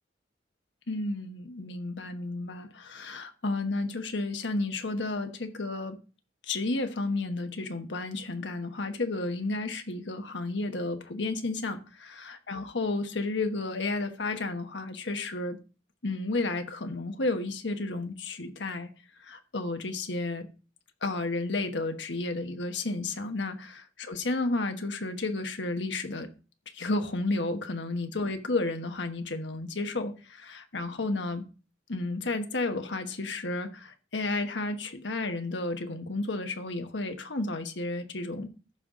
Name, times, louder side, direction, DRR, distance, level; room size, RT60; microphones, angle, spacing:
voice 1, 0.9-6.0 6.5-15.6 16.0-18.9 19.2-20.5 21.0-26.3 26.7-31.5 31.9-38.5, left 2 dB, 75° left, 1.2 m, -32 dB
14.5 x 5.5 x 3.7 m
head